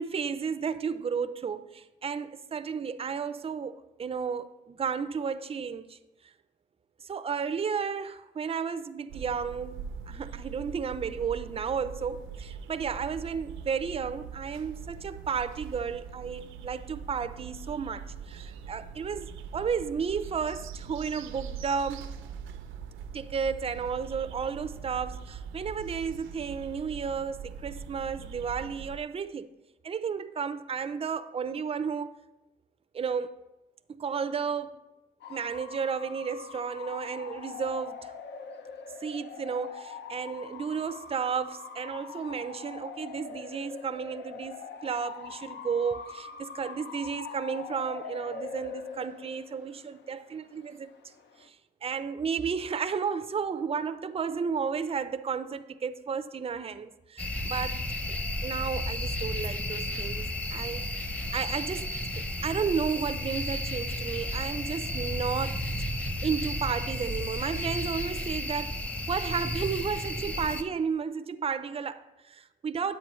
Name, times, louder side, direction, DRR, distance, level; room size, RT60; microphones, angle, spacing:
voice 1, 0.0-6.0 7.0-9.8 10.1-22.1 23.1-29.5 29.8-32.2 32.9-33.4 33.9-34.8 35.3-38.1 39.0-51.1 51.4-51.6 51.8-57.8 58.1-60.8 61.3-65.6 66.2-68.8 69.1-73.0, right 6 dB, 30° right, 0.5 m, -33 dB
sound 1, 9.1-29.0, right 7 dB, 85° right, 0.6 m, -42 dB
Bark / Motor vehicle (road) / Siren, 35.2-51.5, left 6 dB, 60° left, 0.7 m, -43 dB
sound 2, 57.2-70.6, left 1 dB, 5° left, 0.9 m, -33 dB
10.0 x 8.3 x 3.1 m
cardioid pair, 90°, 20 cm